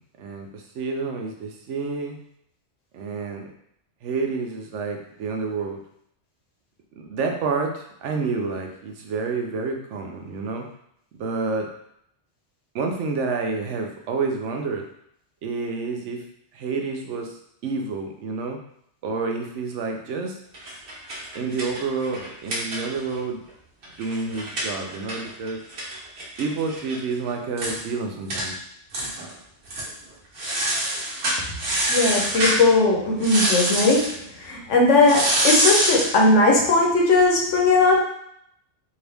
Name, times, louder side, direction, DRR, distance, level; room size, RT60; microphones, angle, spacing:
voice 1, 0.2-2.2 2.9-3.5 4.0-5.8 7.0-10.7 11.1-11.7 12.7-14.9 15.4-16.2 16.5-18.6 19.0-20.4 21.3-23.4 24.0-25.6 26.4-28.6, right 4 dB, 85° right, 3 dB, 1.0 m, -29 dB
sound 1, 20.5-23.2 23.5-23.6 23.8-27.0 27.3-27.4 27.6-27.8 28.3-28.5 28.9-29.3 29.7-29.9 30.4-32.6 33.2-34.1 35.0-36.2, right 1 dB, 65° right, 1.2 m, -25 dB
voice 2, 31.9-34.2 34.4-38.0, left 3 dB, 90° left, -1 dB, 1.2 m, -18 dB
3.7 x 2.6 x 3.4 m, 0.71 s
omnidirectional pair, 1.2 m